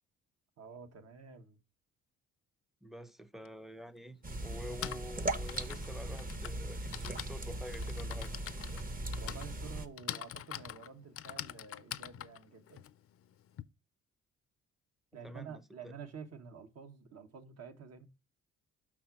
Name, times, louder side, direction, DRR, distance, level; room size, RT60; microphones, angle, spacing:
voice 1, 0.6-1.6 9.2-12.8 15.1-18.1, right 6 dB, 55° right, 1.2 m, -49 dB
voice 2, 2.8-8.3 15.2-15.9, equal, ahead, 0.6 m, -48 dB
Typing, 3.4-3.5 4.5-13.6, left 11 dB, 50° left, 0.5 m, -45 dB
sound 1, 4.2-9.9, right 1 dB, 30° right, 0.9 m, -39 dB
6.0 x 4.1 x 5.8 m
cardioid pair, 90°, 30 cm